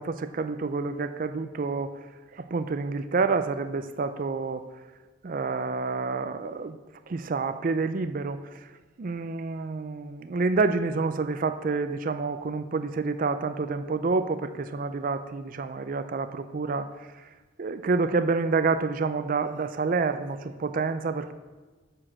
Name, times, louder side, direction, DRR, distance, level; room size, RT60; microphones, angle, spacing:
voice 1, 0.0-1.9 2.4-4.6 5.2-6.8 7.1-8.4 9.0-16.9 17.6-21.3, right 4 dB, 45° right, 10 dB, 0.4 m, -28 dB
7.5 x 6.4 x 6.2 m, 1.3 s
head